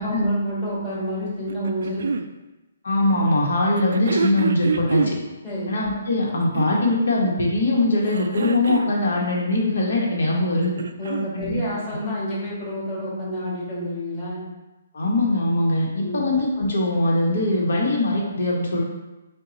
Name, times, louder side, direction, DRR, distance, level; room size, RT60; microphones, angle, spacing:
voice 1, 0.0-2.0 5.4-5.7 11.0-14.4 16.0-16.2, equal, 15° left, -8 dB, 1.4 m, -28 dB
sound 1, 1.5-2.3 3.8-5.2 6.3-7.0 8.0-9.0 10.4-11.4 12.5-12.6, right 4 dB, 70° right, 0.3 m, -26 dB
voice 2, 2.8-5.2 5.7-10.8 11.3-11.6 11.9-12.0 14.9-18.8, left 2 dB, 70° left, -3 dB, 1.2 m, -22 dB
4.5 x 2.3 x 3.9 m, 1.1 s
hypercardioid pair, 170°, 0 cm